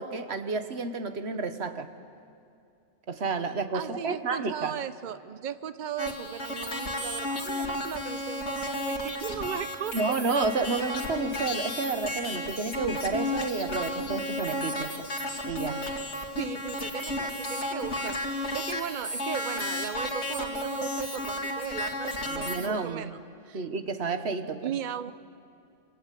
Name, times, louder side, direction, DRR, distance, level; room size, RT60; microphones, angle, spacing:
voice 1, 0.0-1.9 3.1-4.7 9.9-15.1 15.4-15.9 22.3-23.1 23.5-24.8, right 4 dB, 65° right, 9 dB, 1.5 m, -30 dB
voice 2, 3.7-10.2 16.4-23.6 24.6-25.1, right 8 dB, 45° right, 13 dB, 0.8 m, -37 dB
sound 1, 6.0-22.7, left 1 dB, 90° left, 2.7 m, -33 dB
26.5 x 25.5 x 8.4 m, 2.5 s
omnidirectional pair, 1.2 m